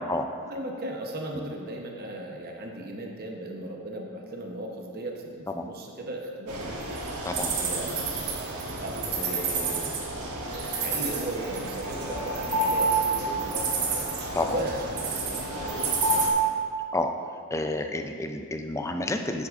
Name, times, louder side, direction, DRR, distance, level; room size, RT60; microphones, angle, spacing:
voice 1, 0.4-6.8 7.4-8.4 8.8-14.1 14.5-16.4, right 1 dB, 45° right, 1 dB, 0.9 m, -37 dB
sound 1, 6.5-16.3, right 4 dB, 90° right, 1.2 m, -31 dB
voice 2, 7.2-7.6 14.3-14.5 16.9-17.1 17.5-19.5, left 2 dB, 15° left, 5 dB, 0.4 m, -29 dB
sound 2, 9.6-9.7 11.5-16.3, right 1 dB, 85° left, 2.0 m, -29 dB
9.7 x 8.0 x 2.5 m, 2.1 s
head